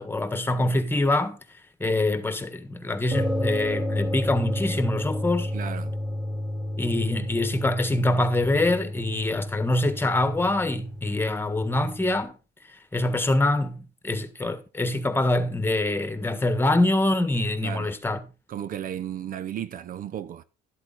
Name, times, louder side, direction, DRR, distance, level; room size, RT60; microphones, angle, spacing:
voice 1, 0.0-1.4 1.8-5.5 6.8-12.3 12.9-18.2, left 2 dB, 15° left, 1.5 m, -25 dB
sound 1, 3.1-12.2, left 1 dB, 5° right, 2.1 m, -31 dB
voice 2, 5.5-5.9 17.6-17.9 18.5-20.4, right 10 dB, 55° right, 0.7 m, -34 dB
12.0 x 8.2 x 4.0 m
cardioid pair, 110°, 17 cm